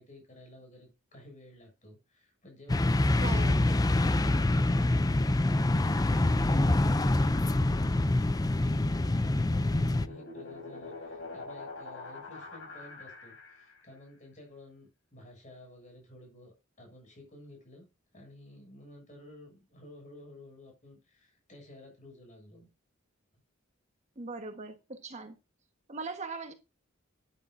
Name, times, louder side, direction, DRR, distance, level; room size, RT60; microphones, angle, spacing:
voice 1, 0.0-5.8 6.1-8.0 8.6-17.9 18.1-22.7, left 1 dB, 40° left, 7.1 m, -52 dB
sound 1, 2.7-10.1, left 2 dB, 20° left, 0.4 m, -25 dB
voice 2, 3.2-3.7 24.2-25.3 25.9-26.5, right 3 dB, 35° right, 1.4 m, -39 dB
sound 2, 9.5-13.9, left 3 dB, 65° left, 6.5 m, -45 dB
11.5 x 9.8 x 2.7 m
head